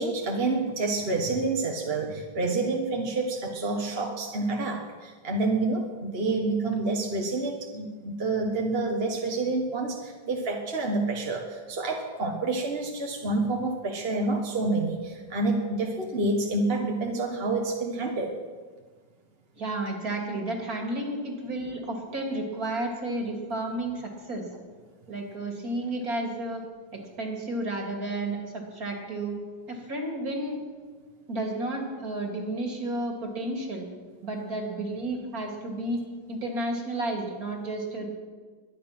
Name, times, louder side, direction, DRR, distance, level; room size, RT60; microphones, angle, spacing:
voice 1, 0.0-18.4, right 3 dB, 35° right, 1 dB, 1.4 m, -28 dB
voice 2, 19.6-24.5 25.1-26.6 26.9-28.5 28.7-29.4 29.7-30.6 31.3-33.9 34.2-36.0 36.3-38.1, right 1 dB, 55° right, 1 dB, 3.0 m, -32 dB
22.5 x 10.0 x 6.0 m, 1.5 s
omnidirectional pair, 1.9 m